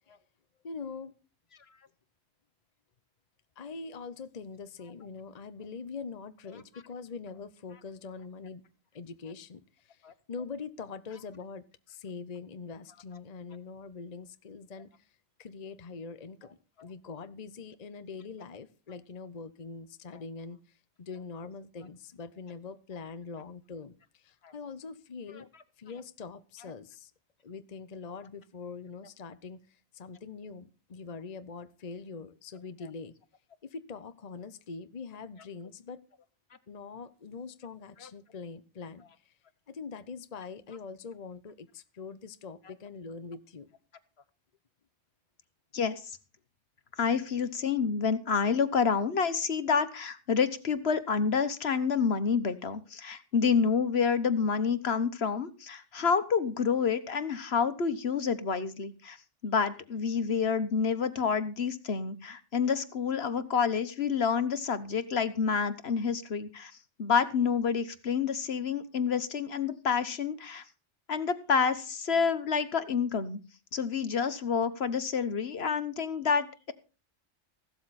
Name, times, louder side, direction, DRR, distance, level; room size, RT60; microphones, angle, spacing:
voice 1, 0.6-1.1 3.6-8.6 8.9-15.1 15.4-25.5 25.8-27.1 27.4-33.1 33.6-36.0 36.7-39.3 39.7-43.7, left 5 dB, 40° left, 11 dB, 0.9 m, -43 dB
voice 2, 47.0-59.2 59.4-66.7 67.0-70.6 71.1-73.4 73.7-76.7, left 6 dB, 60° left, 12 dB, 1.4 m, -28 dB
16.0 x 12.5 x 4.2 m, 0.34 s
omnidirectional pair, 1.2 m